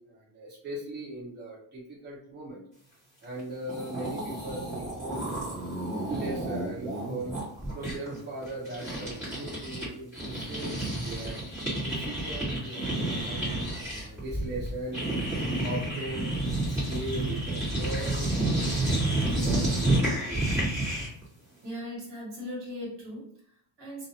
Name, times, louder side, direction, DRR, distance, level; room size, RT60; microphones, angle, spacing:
voice 1, 0.1-2.6 3.2-5.3 6.1-7.4 7.7-11.4 11.7-15.0 15.6-16.4 16.7-20.8, right 1 dB, 20° right, -7 dB, 0.8 m, -39 dB
sound 1, 3.4-3.5 3.7-9.9 10.1-21.2, right 1 dB, 5° right, 1.4 m, -30 dB
voice 2, 21.6-24.1, left 1 dB, 55° right, -3 dB, 1.5 m, -39 dB
2.6 x 2.4 x 2.7 m, 0.63 s
cardioid pair, 155°, 50 cm